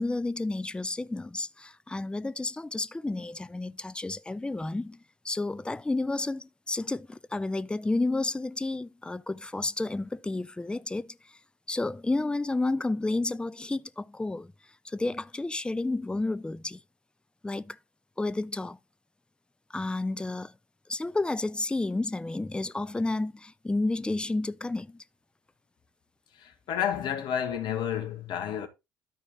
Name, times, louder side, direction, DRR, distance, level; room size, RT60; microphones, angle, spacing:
voice 1, 0.0-5.0 5.2-11.4 11.7-14.5 14.8-16.8 17.4-17.8 18.2-18.8 19.7-20.5 20.9-25.0, left 2 dB, 10° left, 0.6 m, -31 dB
voice 2, 26.3-28.7, left 9 dB, 60° left, 1.8 m, -31 dB
13.0 x 4.7 x 3.9 m
hypercardioid pair, 55°, 9 cm